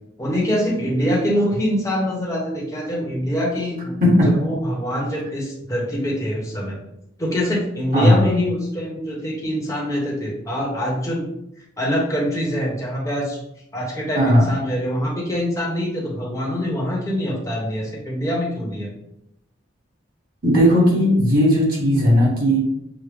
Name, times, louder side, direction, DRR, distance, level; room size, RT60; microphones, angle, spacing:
voice 1, 0.2-6.8 7.2-11.2 11.8-13.4 13.7-18.9, equal, 15° left, -3 dB, 0.9 m, -24 dB
voice 2, 14.1-14.5 20.4-22.6, equal, 45° right, -4 dB, 1.3 m, -16 dB
6.2 x 2.1 x 3.4 m, 0.81 s
head